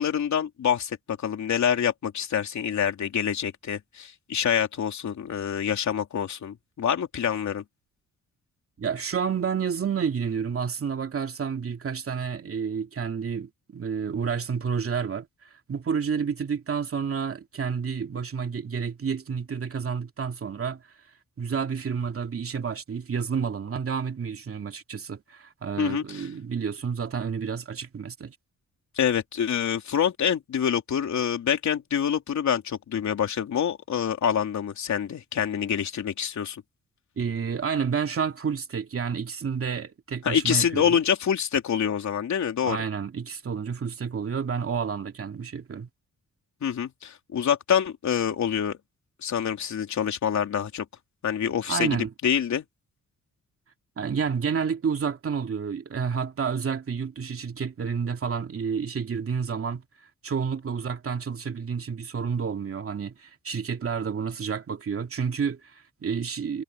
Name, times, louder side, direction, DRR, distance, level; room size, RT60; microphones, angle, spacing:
voice 1, 0.0-7.6 25.8-26.3 29.0-36.6 40.2-42.8 46.6-48.8 49.2-50.8 51.2-52.0 52.2-52.6, left 8 dB, 70° left, 3.4 m, -26 dB
voice 2, 8.8-15.3 15.7-20.8 21.4-28.4 37.2-41.0 42.6-45.9 51.7-52.1 54.0-59.8 60.2-66.6, right 6 dB, 50° right, 2.5 m, -30 dB
cardioid pair, 80°, 30 cm